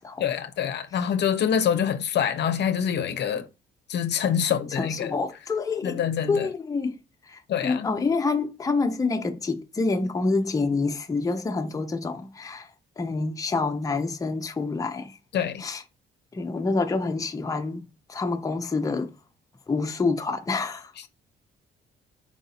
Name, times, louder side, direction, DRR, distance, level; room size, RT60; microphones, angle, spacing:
voice 1, 0.2-3.5 3.9-5.1 5.8-6.5 7.5-7.9 15.3-15.6, left 8 dB, 60° left, 0.6 m, -25 dB
voice 2, 4.8-6.0 6.3-7.0 7.3-12.7 13.0-15.2 15.6-15.8 16.3-19.1 19.7-20.9, left 3 dB, 15° left, 0.5 m, -27 dB
4.7 x 2.6 x 4.1 m
cardioid pair, 90°, 20 cm